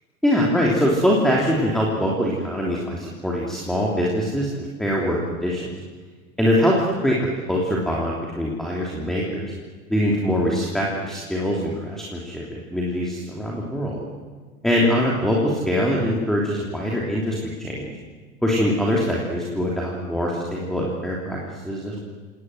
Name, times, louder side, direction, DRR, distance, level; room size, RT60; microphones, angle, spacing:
voice 1, 0.2-5.7 6.4-7.2 7.5-9.5 9.9-14.0 14.6-17.9 18.4-21.4 21.6-22.0, equal, ahead, -3 dB, 3.1 m, -23 dB
28.0 x 18.5 x 7.9 m, 1.5 s
hypercardioid pair, 125°, 45 cm